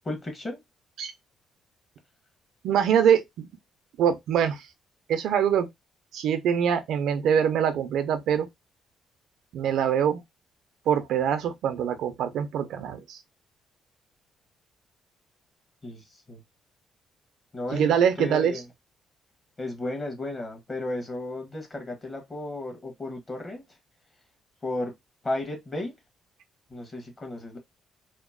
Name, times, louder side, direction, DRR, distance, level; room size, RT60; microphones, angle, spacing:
voice 1, 0.0-0.6 15.8-16.4 17.5-18.7 19.6-23.6 24.6-24.9 25.2-25.9 26.7-27.6, left 2 dB, 30° left, 1.2 m, -34 dB
voice 2, 2.6-3.5 4.0-4.6 5.1-5.7 6.1-8.5 9.5-10.2 10.9-13.2 17.7-18.5, right 8 dB, 80° right, 0.5 m, -24 dB
2.9 x 2.0 x 2.3 m
cardioid pair, 90°, 0 cm